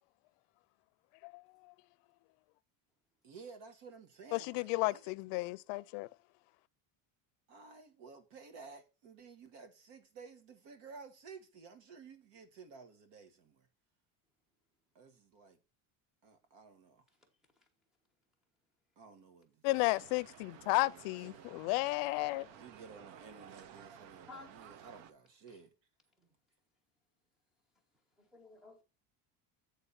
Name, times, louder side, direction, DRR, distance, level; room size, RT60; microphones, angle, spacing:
voice 1, 3.2-5.1 7.5-13.7 15.0-15.6 16.2-17.0 19.0-20.1 20.5-21.5 22.5-25.7, right 5 dB, 60° right, 1.7 m, -54 dB
voice 2, 4.3-6.1 19.6-22.5, left 22 dB, 85° left, 0.6 m, -33 dB
sound 1, 19.7-25.1, right 9 dB, 75° right, 0.9 m, -55 dB
voice 3, 24.3-24.7 25.5-25.6 26.2-26.4 28.2-28.8, left 3 dB, ahead, 1.2 m, -54 dB
8.4 x 3.8 x 5.6 m
cardioid pair, 180°, 49 cm